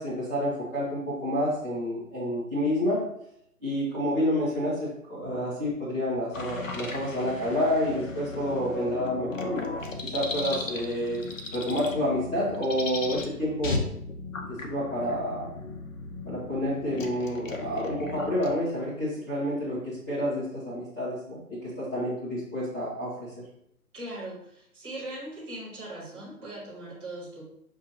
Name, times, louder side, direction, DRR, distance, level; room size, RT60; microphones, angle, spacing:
voice 1, 0.0-3.1 3.6-9.7 10.0-11.2 11.5-13.8 14.5-15.5 16.3-23.4, equal, 10° left, -13 dB, 0.8 m, -29 dB
sound 1, 6.3-18.6, left 3 dB, 55° left, 0.8 m, -36 dB
voice 2, 23.9-27.4, right 1 dB, 15° right, -8 dB, 1.4 m, -40 dB
7.1 x 2.6 x 2.8 m, 0.71 s
figure-of-eight pair, 145°, 45 cm